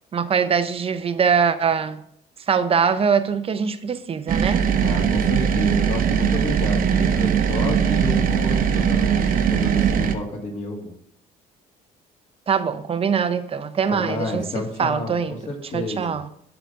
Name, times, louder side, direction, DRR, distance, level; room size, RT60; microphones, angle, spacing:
voice 1, 0.1-2.0 2.5-4.6 12.5-15.4 15.7-16.3, right 6 dB, 35° right, 0.7 m, -22 dB
sound 1, 4.3-10.1, right 7 dB, 55° right, 0.9 m, -20 dB
voice 2, 4.8-10.9 13.9-16.2, left 2 dB, 45° left, 2.5 m, -30 dB
11.5 x 4.0 x 5.1 m
cardioid pair, 110°, 17 cm